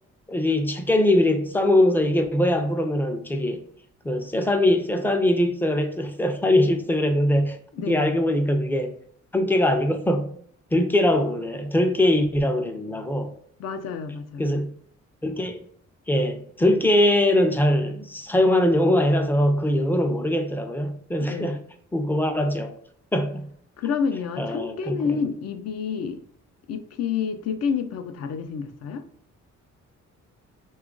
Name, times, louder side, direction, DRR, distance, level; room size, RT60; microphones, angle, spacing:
voice 1, 0.3-3.6 4.0-8.9 9.3-10.3 10.7-13.3 14.4-14.8 15.2-15.6 16.1-21.6 21.9-22.7 23.1-23.5 24.4-25.2, left 1 dB, 5° left, 0.4 m, -22 dB
voice 2, 7.7-8.2 13.6-14.6 21.3-21.6 23.8-26.2 26.7-29.0, left 6 dB, 55° left, 0.5 m, -29 dB
2.9 x 2.3 x 3.7 m
cardioid pair, 90°, 30 cm